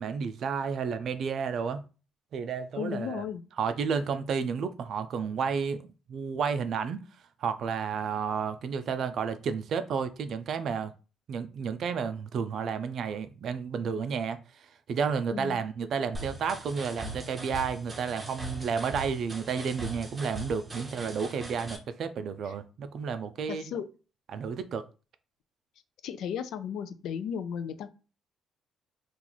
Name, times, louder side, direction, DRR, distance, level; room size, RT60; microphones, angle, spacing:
voice 1, 0.0-1.8 2.3-3.2 3.6-5.8 6.1-7.0 7.4-10.9 11.3-23.7 24.3-24.9, right 6 dB, 50° right, 0.4 m, -31 dB
voice 2, 2.8-3.4 15.3-15.6 23.5-23.9 26.0-27.9, left 8 dB, 70° left, 0.4 m, -35 dB
sound 1, 16.1-21.8, right 2 dB, 15° right, 0.7 m, -41 dB
3.0 x 2.4 x 3.9 m
cardioid pair, 155°, 0 cm